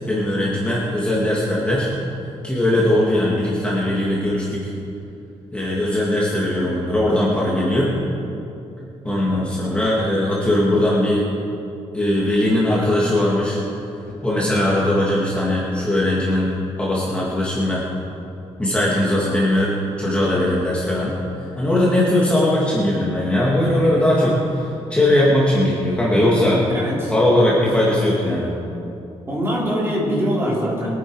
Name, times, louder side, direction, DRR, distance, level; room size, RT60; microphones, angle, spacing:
voice 1, 0.0-1.9 2.4-4.7 5.5-7.9 9.0-11.2 11.9-13.6 14.2-16.5 16.8-17.8 18.6-19.7 20.0-21.1 21.6-26.6 27.1-28.5, left 1 dB, 10° left, -6 dB, 2.0 m, -19 dB
voice 2, 26.7-27.1 27.8-28.0 29.3-31.0, equal, 20° right, -6 dB, 3.9 m, -23 dB
22.5 x 9.2 x 4.8 m, 2.7 s
wide cardioid pair, 160°, 11 cm